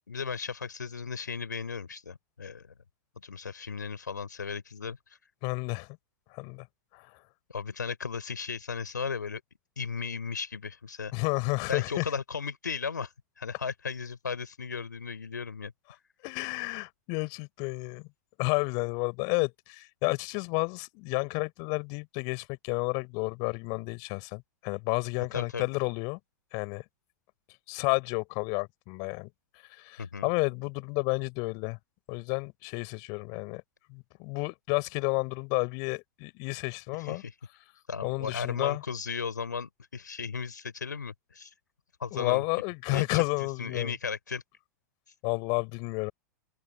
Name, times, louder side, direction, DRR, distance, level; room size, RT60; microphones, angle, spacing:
voice 1, 0.0-2.7 3.2-5.0 7.5-9.4 9.8-11.1 11.7-15.7 25.3-25.7 30.0-30.3 37.0-37.3 37.9-41.5 42.0-42.4 42.9-44.4, left 5 dB, 80° left, 3.6 m, -36 dB
voice 2, 5.4-5.9 6.3-6.7 6.9-7.1 11.1-12.0 16.2-18.0 18.4-26.2 26.5-26.8 27.7-29.3 29.7-31.8 32.1-33.6 33.9-37.2 38.0-38.8 42.1-43.9 45.2-46.1, left 33 dB, 45° left, 3.8 m, -31 dB
figure-of-eight pair, 100°, 10 cm